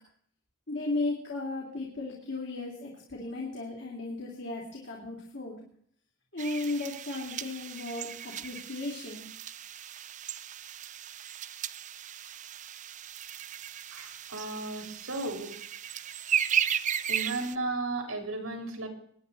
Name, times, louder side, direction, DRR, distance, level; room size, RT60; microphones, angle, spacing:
voice 1, 0.7-5.6 6.3-9.3, left 2 dB, 60° left, -2 dB, 3.1 m, -35 dB
sound 1, 6.4-17.6, right 9 dB, 35° right, 0.5 m, -35 dB
voice 2, 13.9-15.5 17.1-18.9, right 2 dB, 90° right, 3 dB, 4.3 m, -34 dB
22.0 x 10.0 x 4.1 m, 0.64 s
head